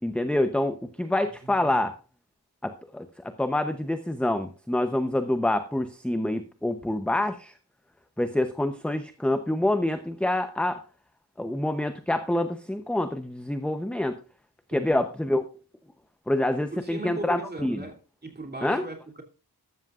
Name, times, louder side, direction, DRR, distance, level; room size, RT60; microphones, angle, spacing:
voice 1, 0.0-1.9 2.6-7.5 8.2-10.8 11.4-14.2 14.7-15.4 16.3-17.8 18.6-18.9, left 1 dB, 5° left, 0.7 m, -26 dB
voice 2, 1.4-1.8 14.7-15.0 16.7-19.2, right 2 dB, 25° right, 2.9 m, -38 dB
13.5 x 13.0 x 2.5 m
wide cardioid pair, 120°, 40 cm